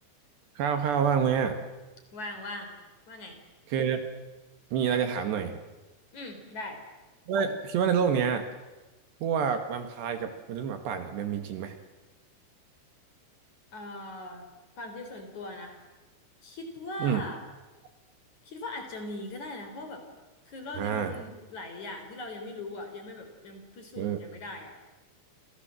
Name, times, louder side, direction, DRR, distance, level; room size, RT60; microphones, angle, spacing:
voice 1, 0.6-1.6 3.7-4.0 4.7-5.6 7.3-8.4 9.2-11.7 17.0-17.2 20.8-21.1 24.0-24.2, right 7 dB, 65° right, 7 dB, 3.3 m, -27 dB
voice 2, 2.1-2.7 3.1-3.4 6.1-6.8 13.7-14.5 14.8-15.8 16.4-17.4 18.5-20.0 20.5-24.7, left 2 dB, 40° left, 6 dB, 4.6 m, -40 dB
29.5 x 26.5 x 7.7 m, 1.2 s
omnidirectional pair, 5.8 m